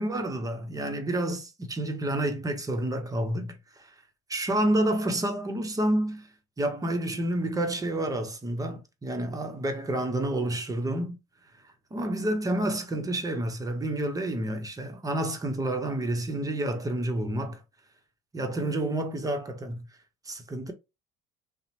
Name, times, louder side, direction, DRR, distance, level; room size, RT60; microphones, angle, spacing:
voice 1, 0.0-3.9 4.3-6.3 6.6-11.2 11.9-17.6 18.3-19.8 20.3-20.7, right 1 dB, 20° right, 0.8 m, -29 dB
2.8 x 2.0 x 2.8 m
supercardioid pair, 85°, 19 cm